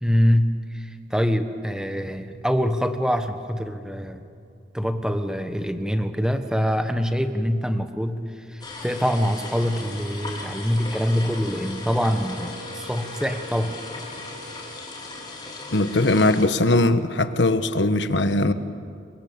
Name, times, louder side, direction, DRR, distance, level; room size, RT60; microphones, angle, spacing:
voice 1, 0.0-4.2 4.7-13.8, equal, 5° right, 8 dB, 1.3 m, -24 dB
sound 1, 8.6-16.5, left 3 dB, 25° left, 4.9 m, -37 dB
Wind instrument woodwind instrument, 11.2-15.6, equal, 55° right, 2.9 m, -44 dB
voice 2, 15.7-18.5, left 2 dB, 75° left, 11 dB, 1.3 m, -20 dB
28.5 x 23.0 x 8.7 m, 2.5 s
head